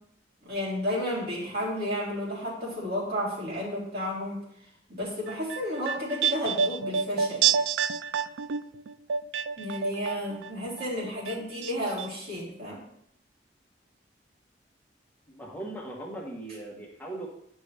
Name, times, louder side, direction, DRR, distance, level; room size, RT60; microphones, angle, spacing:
voice 1, 0.4-4.4 4.9-7.6 9.6-12.8, equal, 60° right, -6 dB, 3.4 m, -32 dB
sound 1, 5.3-10.5 10.8-11.7 12.0-12.1, right 7 dB, 80° right, 0.3 m, -28 dB
voice 2, 15.3-17.3, right 1 dB, 10° left, -3 dB, 1.3 m, -39 dB
10.5 x 5.4 x 3.4 m, 0.71 s
head